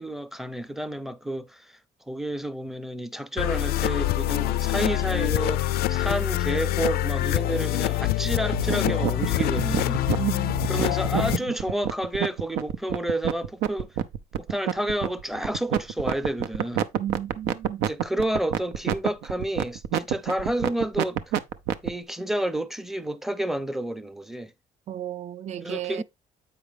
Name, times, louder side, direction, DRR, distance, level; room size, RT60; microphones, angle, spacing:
voice 1, 0.0-1.7 2.1-10.0 10.7-13.9 14.4-16.8 17.8-21.2 21.8-24.5 25.6-26.0, right 1 dB, ahead, 0.6 m, -30 dB
sound 1, 3.4-11.4, left 15 dB, 70° left, 0.4 m, -25 dB
sound 2, 8.5-21.9, right 10 dB, 90° right, 0.7 m, -27 dB
voice 2, 10.2-10.7 17.0-17.8 24.9-26.0, right 11 dB, 45° right, 0.5 m, -33 dB
8.2 x 4.9 x 3.4 m
cardioid pair, 110°, 17 cm